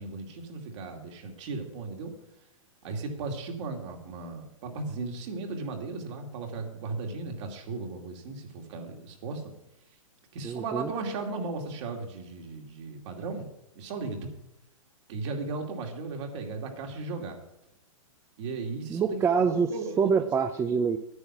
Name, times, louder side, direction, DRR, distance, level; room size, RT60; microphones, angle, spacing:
voice 1, 0.0-2.1 2.8-9.4 10.3-13.5 13.7-14.3 15.1-17.4 18.4-19.2 19.5-20.2, right 3 dB, 55° right, 2 dB, 2.6 m, -36 dB
voice 2, 10.4-10.9 18.9-19.7 20.0-21.0, right 6 dB, 15° right, 8 dB, 0.5 m, -25 dB
9.7 x 9.6 x 6.1 m, 0.85 s
hypercardioid pair, 125°, 18 cm